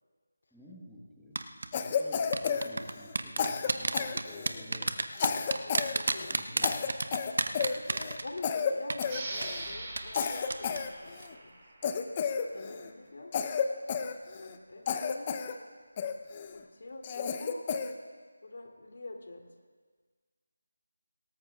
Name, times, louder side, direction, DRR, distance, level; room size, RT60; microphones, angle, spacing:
voice 1, 0.5-5.0 6.3-6.9, equal, ahead, -9 dB, 1.5 m, -50 dB
sound 1, 1.4-1.7 2.3-8.6 8.9-9.0 9.4-9.5 10.0-10.2 10.5-10.8 11.1-11.3, right 3 dB, 60° right, 1.0 m, -30 dB
Cough, 1.7-3.1 3.4-4.7 5.1-5.9 6.2-6.3 6.6-8.2 8.4-8.7 9.0-9.7 10.1-11.3 11.8-12.9 13.3-14.6 14.9-15.5 16.0-16.5 17.0-17.9, left 6 dB, 25° left, 0.8 m, -32 dB
voice 2, 5.1-6.3 8.2-11.7 12.5-13.3 14.3-15.4 16.5-17.6 18.4-19.4, left 2 dB, 60° left, 2 dB, 3.0 m, -46 dB
sound 2, 9.0-12.3, right 2 dB, 25° right, 5.4 m, -42 dB
26.0 x 19.0 x 2.5 m, 1.5 s
figure-of-eight pair, 165°, 0 cm